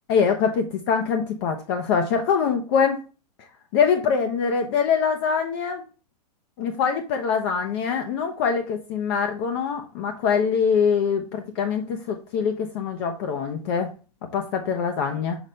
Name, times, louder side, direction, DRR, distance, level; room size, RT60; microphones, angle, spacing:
voice 1, 0.1-3.0 3.7-5.8 6.6-13.9 14.3-15.4, left 6 dB, 40° left, 5 dB, 0.8 m, -24 dB
6.1 x 3.2 x 5.3 m, 0.34 s
hypercardioid pair, 150°, 21 cm